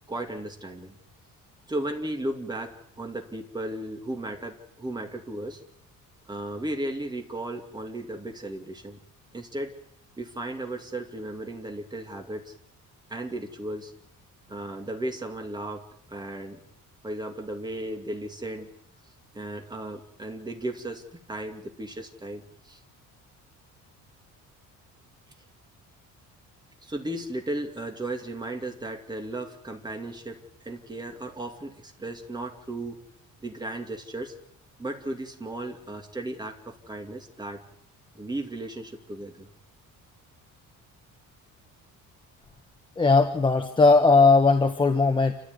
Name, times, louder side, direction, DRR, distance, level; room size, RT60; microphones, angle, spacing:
voice 1, 0.1-1.0 1.7-5.6 6.3-9.0 9.3-9.7 10.2-12.5 13.1-13.9 14.5-16.6 17.0-18.7 19.3-22.8 26.8-33.0 33.4-34.3 34.8-37.6 38.1-39.5, right 1 dB, 15° right, 3 dB, 2.8 m, -35 dB
voice 2, 43.0-45.3, left 3 dB, 15° left, 5 dB, 1.3 m, -18 dB
28.5 x 14.5 x 9.7 m, 0.69 s
cardioid pair, 170°, 32 cm